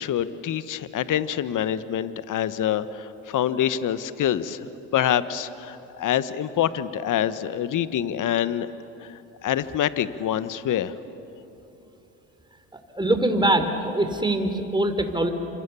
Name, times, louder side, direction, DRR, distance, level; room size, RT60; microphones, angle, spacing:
voice 1, 0.0-8.7 9.0-10.9, left 10 dB, 50° left, 14 dB, 1.2 m, -26 dB
voice 2, 12.7-15.3, right 1 dB, 10° right, 7 dB, 3.4 m, -23 dB
29.0 x 26.5 x 7.1 m, 3.0 s
hypercardioid pair, 60°, 40 cm